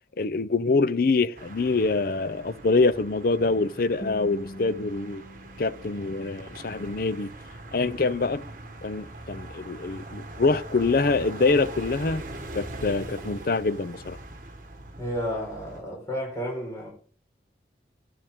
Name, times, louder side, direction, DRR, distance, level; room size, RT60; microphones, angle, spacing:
voice 1, 0.2-5.2 5.6-7.3 7.7-8.4 8.8-12.2 12.5-14.2, left 3 dB, 55° left, 0.6 m, -25 dB
sound 1, 1.4-15.8, right 2 dB, 45° right, 1.4 m, -42 dB
Guitar, 4.0-7.0, equal, 40° left, 2.2 m, -43 dB
voice 2, 15.0-16.9, equal, 15° left, 4.6 m, -32 dB
13.5 x 8.7 x 3.6 m
head